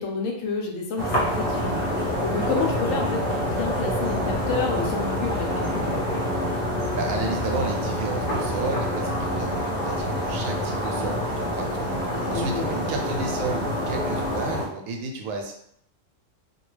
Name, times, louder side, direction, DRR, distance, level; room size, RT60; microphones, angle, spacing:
voice 1, 0.0-6.0 12.1-12.8, left 4 dB, 80° left, 1 dB, 1.0 m, -30 dB
sound 1, 1.0-14.7, equal, 40° left, 0.7 m, -26 dB
voice 2, 6.9-11.9 12.3-15.5, right 3 dB, 85° right, 2 dB, 1.0 m, -32 dB
2.3 x 2.2 x 3.1 m, 0.71 s
omnidirectional pair, 1.4 m